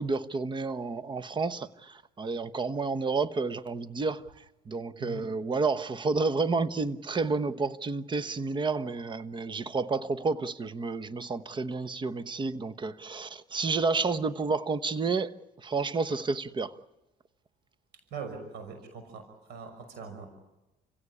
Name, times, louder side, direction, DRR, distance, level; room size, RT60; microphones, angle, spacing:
voice 1, 0.0-4.2 4.7-15.3 15.6-16.7, right 4 dB, 30° right, 1.2 m, -30 dB
voice 2, 17.9-20.3, right 5 dB, 80° right, 5.8 m, -42 dB
29.5 x 17.0 x 9.7 m
cardioid pair, 110°, 17 cm